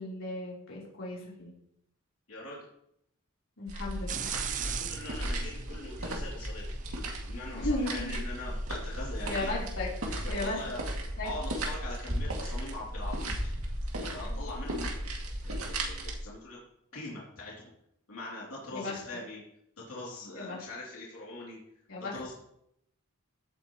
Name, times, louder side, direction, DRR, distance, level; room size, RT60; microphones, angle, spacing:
voice 1, 0.0-1.5 3.6-4.3 7.5-8.2 9.3-10.6 11.2-11.3 14.3-14.4 18.7-19.0 20.4-20.6 21.9-22.3, left 2 dB, 65° left, -4 dB, 3.6 m, -36 dB
voice 2, 2.3-2.7 4.6-6.7 7.3-9.5 10.2-10.8 11.2-13.5 14.0-15.2 15.4-16.6 16.9-17.5 18.1-19.4 19.8-21.6 22.1-22.3, left 2 dB, 85° left, -5 dB, 2.9 m, -42 dB
sound 1, 3.7-16.2, right 1 dB, 90° right, 2.3 m, -35 dB
sound 2, 4.1-10.3, right 9 dB, 35° right, 0.4 m, -42 dB
15.5 x 8.7 x 3.0 m, 0.75 s
head